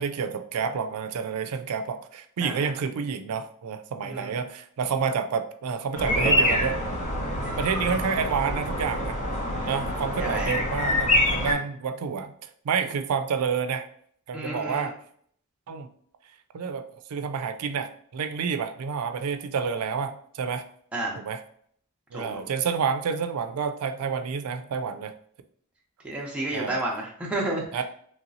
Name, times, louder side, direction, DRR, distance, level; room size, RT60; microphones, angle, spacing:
voice 1, 0.0-6.8 7.6-9.2 9.7-12.3 12.6-13.9 14.3-14.9 15.7-15.9 16.5-20.6 21.2-21.4 22.1-25.1 26.5-26.8 27.7-27.8, right 6 dB, 85° right, 9 dB, 0.4 m, -29 dB
sound 1, 5.9-11.5, left 1 dB, 35° left, 0.8 m, -26 dB
voice 2, 10.2-10.5 14.3-14.9 20.9-21.2 22.1-22.4 26.0-27.8, right 1 dB, 5° right, -3 dB, 0.6 m, -31 dB
3.1 x 2.8 x 2.6 m, 0.63 s
head